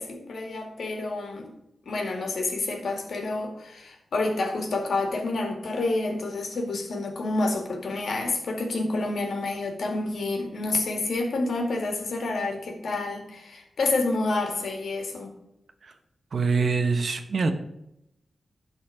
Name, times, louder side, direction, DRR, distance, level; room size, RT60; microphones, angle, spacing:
voice 1, 0.0-1.5 1.9-15.3, left 2 dB, 80° left, 2 dB, 2.1 m, -28 dB
voice 2, 16.3-17.5, right 4 dB, 65° right, 7 dB, 1.1 m, -24 dB
11.5 x 4.2 x 6.5 m, 0.83 s
wide cardioid pair, 80°, 0 cm